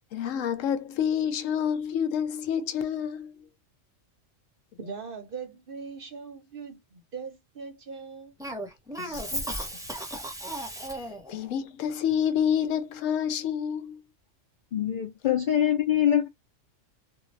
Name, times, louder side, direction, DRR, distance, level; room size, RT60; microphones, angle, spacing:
voice 1, 0.1-3.4 9.0-9.7 11.3-14.0, left 8 dB, 80° left, 1.0 m, -28 dB
voice 2, 4.8-8.3, right 5 dB, 50° right, 0.8 m, -40 dB
Cough, 8.4-11.3, right 1 dB, 5° right, 0.6 m, -35 dB
voice 3, 14.7-16.3, left 10 dB, 65° left, 0.5 m, -24 dB
2.6 x 2.2 x 3.1 m
omnidirectional pair, 1.3 m